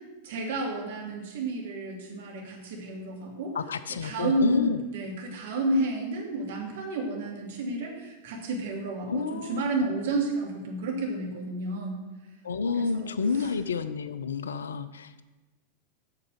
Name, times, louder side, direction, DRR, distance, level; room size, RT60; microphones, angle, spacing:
voice 1, 0.2-3.6 4.0-12.0 12.7-13.5, right 2 dB, 55° right, 0 dB, 2.5 m, -31 dB
voice 2, 3.5-4.8 9.1-9.6 12.4-15.2, left 5 dB, 70° left, 13 dB, 0.5 m, -30 dB
8.5 x 6.6 x 6.5 m, 1.1 s
figure-of-eight pair, 90°, 0 cm